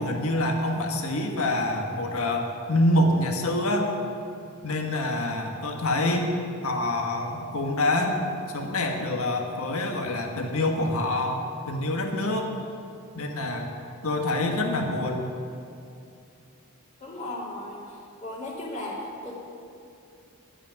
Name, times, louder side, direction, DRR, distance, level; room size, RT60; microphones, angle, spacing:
voice 1, 0.0-3.9 4.6-6.3 6.6-8.2 8.5-12.5 13.1-13.7 14.0-15.3, left 1 dB, 70° left, 2 dB, 1.5 m, -26 dB
voice 2, 17.0-17.8 18.2-19.3, left 1 dB, 30° left, -4 dB, 2.6 m, -35 dB
11.5 x 8.7 x 9.3 m, 2.6 s
head